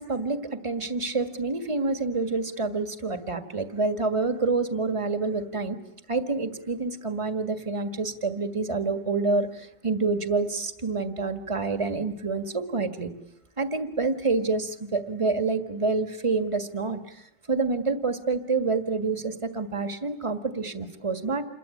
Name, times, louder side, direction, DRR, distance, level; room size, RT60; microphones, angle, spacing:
voice 1, 0.0-5.8 6.1-13.1 13.6-21.4, right 3 dB, 20° right, 8 dB, 0.9 m, -27 dB
28.5 x 22.0 x 8.6 m, 0.79 s
omnidirectional pair, 3.4 m